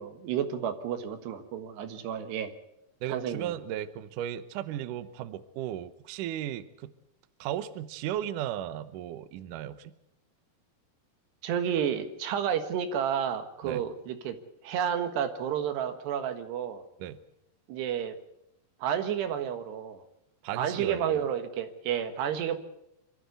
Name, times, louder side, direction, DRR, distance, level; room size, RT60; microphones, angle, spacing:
voice 1, 0.0-2.5 3.1-3.6 11.4-14.4 14.6-16.8 17.7-18.1 18.8-20.0 20.6-22.6, right 8 dB, 90° right, 8 dB, 3.7 m, -31 dB
voice 2, 3.0-6.9 7.4-9.9 13.6-13.8 17.0-17.2 20.4-21.3, right 11 dB, 70° right, 12 dB, 2.1 m, -35 dB
26.5 x 13.5 x 8.3 m, 0.81 s
omnidirectional pair, 4.7 m